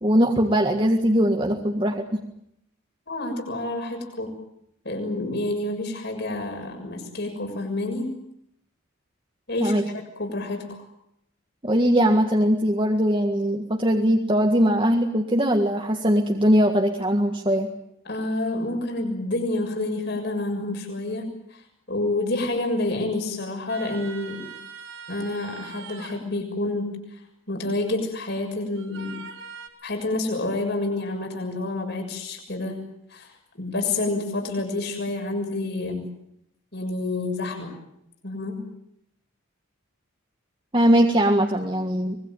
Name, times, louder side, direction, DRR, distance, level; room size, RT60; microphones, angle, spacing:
voice 1, 0.0-2.2 9.6-9.8 11.6-17.7 40.7-42.2, equal, 25° right, 2 dB, 1.7 m, -21 dB
voice 2, 3.1-4.3 4.8-8.1 9.5-10.8 18.0-21.3 21.9-24.5 25.1-27.2 27.5-29.2 29.8-32.8 33.1-33.3 33.5-36.1 36.7-37.7 38.2-38.7, left 2 dB, 50° left, 3 dB, 6.6 m, -28 dB
sound 1, 23.7-26.2 28.7-29.7, right 5 dB, 70° right, 5.0 m, -41 dB
25.0 x 21.5 x 9.2 m, 0.78 s
head